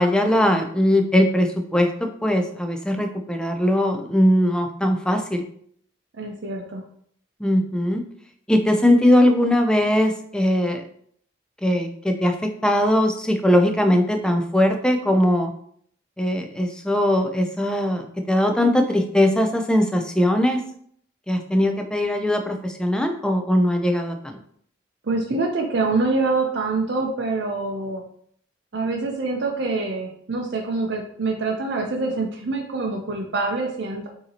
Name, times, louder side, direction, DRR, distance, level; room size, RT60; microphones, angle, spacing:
voice 1, 0.0-5.4 7.4-8.0 8.5-10.8 11.6-15.5 16.2-20.6 21.3-24.4, left 1 dB, 5° left, 5 dB, 0.4 m, -20 dB
voice 2, 6.1-6.8 25.0-28.0 28.7-34.1, right 3 dB, 55° right, 1 dB, 0.5 m, -25 dB
6.5 x 2.8 x 2.8 m, 0.64 s
head